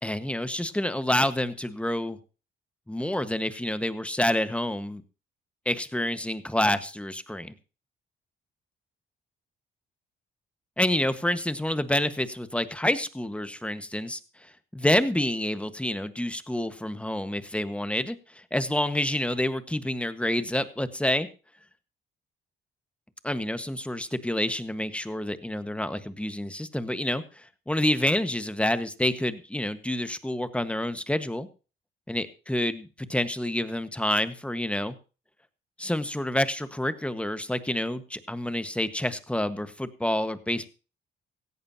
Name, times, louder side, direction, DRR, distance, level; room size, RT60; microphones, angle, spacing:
voice 1, 0.0-2.2 2.9-5.0 5.6-7.5 10.8-14.2 14.7-21.3 23.2-27.2 27.7-31.5 32.1-34.9 35.8-40.7, left 1 dB, 5° left, 11 dB, 1.5 m, -28 dB
17.0 x 14.5 x 2.9 m, 0.34 s
cardioid pair, 90°, 20 cm